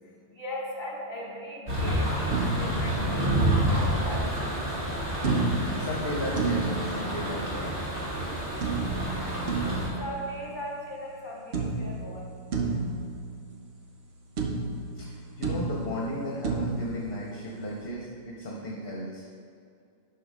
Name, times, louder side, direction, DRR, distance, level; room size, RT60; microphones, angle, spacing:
voice 1, 0.0-4.5 10.0-12.2, equal, 45° left, -3 dB, 2.0 m, -38 dB
sound 1, 1.7-9.9, right 1 dB, 60° right, 2.5 m, -29 dB
sound 2, 2.3-3.8 5.2-7.9 8.6-11.2 11.5-14.1 14.4-17.8, right 3 dB, 85° right, 1.1 m, -32 dB
voice 2, 5.7-7.8 14.9-19.2, left 1 dB, 60° left, -3 dB, 1.3 m, -35 dB
11.0 x 6.0 x 3.7 m, 2.4 s
omnidirectional pair, 1.1 m